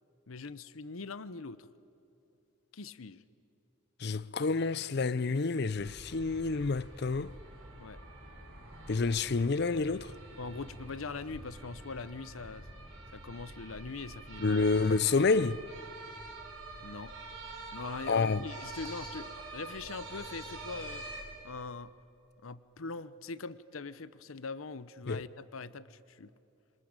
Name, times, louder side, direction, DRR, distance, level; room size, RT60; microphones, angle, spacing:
voice 1, 0.3-1.7 2.7-3.2 7.8-8.0 10.4-12.7 13.1-14.6 16.8-17.1 17.7-21.0 21.4-21.9 22.4-26.3, left 4 dB, 90° left, 0.8 m, -42 dB
voice 2, 4.0-7.3 8.9-10.1 14.4-15.6 18.1-18.4 25.1-25.2, left 4 dB, 55° left, 0.6 m, -28 dB
sound 1, 5.8-21.2, right 2 dB, 65° right, 6.6 m, -46 dB
27.0 x 25.0 x 8.9 m
head